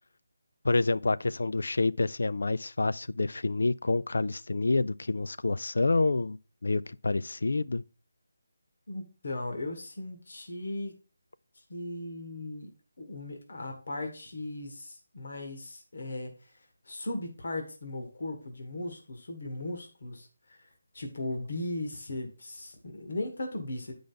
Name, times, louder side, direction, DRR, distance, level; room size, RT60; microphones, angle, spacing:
voice 1, 0.6-7.8, left 3 dB, 65° left, 0.4 m, -28 dB
voice 2, 8.9-11.0 11.7-12.7 13.0-20.6 20.9-23.9, left 2 dB, 45° left, 1.4 m, -37 dB
8.9 x 5.0 x 3.9 m
figure-of-eight pair, 180°, 0 cm